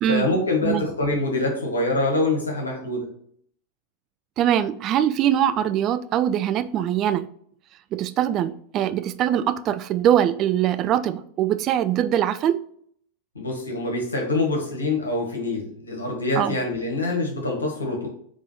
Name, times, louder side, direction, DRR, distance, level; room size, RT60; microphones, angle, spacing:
voice 1, 0.1-3.1 13.3-18.1, left 2 dB, 75° left, 1.6 m, -25 dB
voice 2, 4.4-7.3 7.9-12.6 16.4-16.6, right 10 dB, 35° right, 0.4 m, -22 dB
4.9 x 3.5 x 5.5 m
figure-of-eight pair, 90°, 0 cm